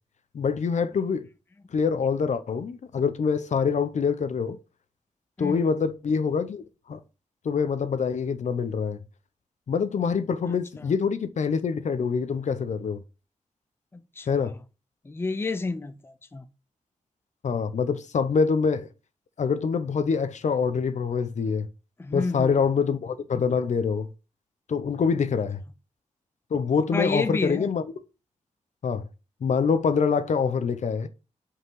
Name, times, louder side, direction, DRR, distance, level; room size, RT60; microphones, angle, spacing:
voice 1, 0.3-1.3 1.7-4.6 5.4-7.0 7.4-9.0 9.7-13.0 14.3-14.5 17.4-18.9 19.4-21.7 22.1-24.1 24.7-25.6 26.5-27.8 28.8-29.1 29.4-31.1, left 5 dB, 65° left, 0.7 m, -25 dB
voice 2, 10.5-10.9 13.9-14.5 15.0-16.5 22.0-22.6 26.9-27.7, left 3 dB, 20° left, 0.5 m, -30 dB
5.7 x 5.6 x 4.7 m
wide cardioid pair, 130°, 13 cm